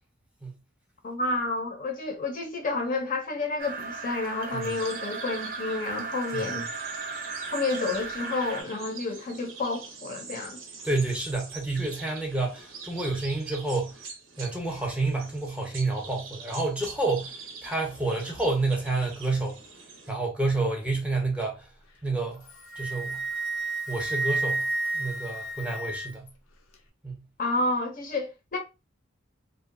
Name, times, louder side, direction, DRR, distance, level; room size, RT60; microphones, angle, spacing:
voice 1, 1.0-6.7 7.5-10.6 27.4-28.6, left 3 dB, 45° left, 0.6 m, -30 dB
sound 1, 3.6-8.6, right 4 dB, 45° right, 0.5 m, -36 dB
sound 2, 4.6-20.1, right 5 dB, 90° right, 0.7 m, -44 dB
voice 2, 10.8-13.9 14.4-19.6 20.1-21.7 22.0-22.4 22.8-23.2 23.9-24.7 24.9-26.3 27.0-27.2, right 2 dB, 5° right, 0.6 m, -29 dB
Wind instrument woodwind instrument, 22.3-26.3, right 3 dB, 90° left, 0.5 m, -31 dB
2.6 x 2.1 x 2.5 m
head